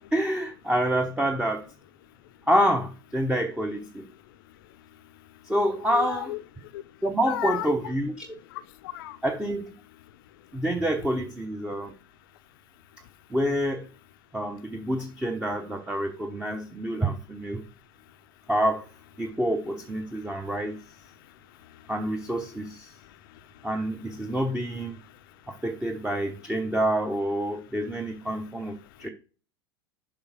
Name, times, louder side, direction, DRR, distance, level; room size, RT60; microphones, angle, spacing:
voice 1, 0.1-1.7 2.5-4.1 5.5-6.4 7.0-8.3 9.2-9.7 10.5-11.9 13.3-13.8 14.3-17.7 18.5-18.8 19.2-20.8 21.9-22.9 23.6-25.0 25.5-29.1, right 1 dB, 5° right, 0.8 m, -27 dB
voice 2, 4.5-5.5 5.9-6.9 7.3-7.7 8.5-9.2 10.5-10.6 20.1-20.5 21.2-21.9 22.9-23.7 24.2-24.4 25.1-25.2 25.5-25.6 28.9-29.1, left 14 dB, 60° left, 0.6 m, -39 dB
7.0 x 4.7 x 4.9 m
figure-of-eight pair, 85°, 13 cm